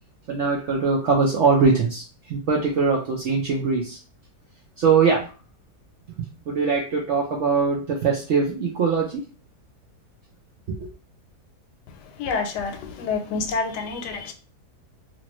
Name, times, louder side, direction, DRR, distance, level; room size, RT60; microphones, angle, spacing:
voice 1, 0.3-4.0 4.8-5.3 6.5-9.2 10.7-10.9, right 5 dB, 75° right, -1 dB, 0.6 m, -22 dB
voice 2, 12.2-14.3, left 4 dB, 85° left, 5 dB, 1.2 m, -28 dB
2.9 x 2.5 x 2.9 m, 0.37 s
omnidirectional pair, 1.8 m